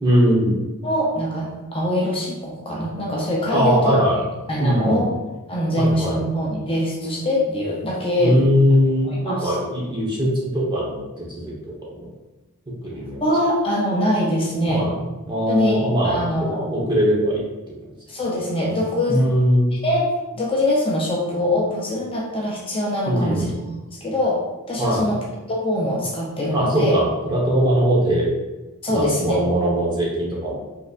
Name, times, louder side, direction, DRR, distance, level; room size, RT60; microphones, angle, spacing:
voice 1, 0.0-0.6 3.5-4.2 4.6-5.0 5.8-6.2 8.2-12.1 12.8-13.2 14.7-14.9 15.3-17.7 19.1-19.7 23.1-23.5 24.8-25.1 26.5-28.3 28.9-30.6, equal, 20° right, -4 dB, 1.1 m, -21 dB
voice 2, 0.8-4.0 4.5-5.1 5.5-8.4 9.0-9.5 13.2-14.9 15.5-16.7 18.1-19.2 19.8-23.5 24.0-27.0 28.8-29.4, left 1 dB, 25° left, -4 dB, 0.6 m, -23 dB
5.4 x 3.2 x 2.5 m, 1.1 s
head